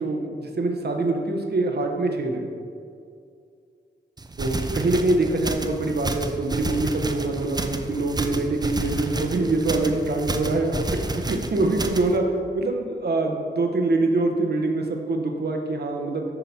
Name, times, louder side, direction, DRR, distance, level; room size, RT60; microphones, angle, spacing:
voice 1, 0.0-2.5 4.4-16.2, right 2 dB, 55° right, 3 dB, 1.0 m, -24 dB
sound 1, 4.2-12.2, right 2 dB, 20° right, 0.6 m, -30 dB
9.8 x 4.0 x 4.2 m, 2.3 s
cardioid pair, 50°, 19 cm